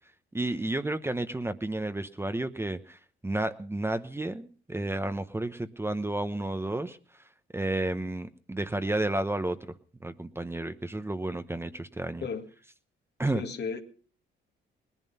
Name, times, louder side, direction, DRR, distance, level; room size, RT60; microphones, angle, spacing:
voice 1, 0.3-3.0 3.2-7.0 7.5-9.6 10.0-12.3 13.2-13.4, right 2 dB, 10° right, 0.9 m, -31 dB
voice 2, 13.3-13.8, left 5 dB, 60° left, 2.0 m, -33 dB
19.5 x 11.0 x 5.5 m
cardioid pair, 90°, 20 cm